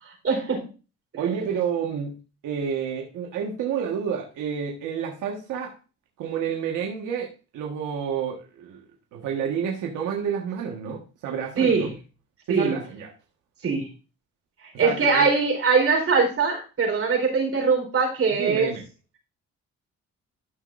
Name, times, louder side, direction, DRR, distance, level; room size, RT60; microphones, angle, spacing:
voice 1, 0.2-0.6 11.6-11.9 12.5-12.8 13.6-13.9 14.8-18.7, right 4 dB, 50° right, 1 dB, 4.3 m, -22 dB
voice 2, 1.2-2.1 2.4-5.7 6.2-8.8 9.1-11.9 12.5-13.1 14.8-15.3 18.4-18.8, right 7 dB, 85° right, 0 dB, 1.6 m, -29 dB
13.0 x 6.0 x 2.6 m, 0.32 s
cardioid pair, 90°, 30 cm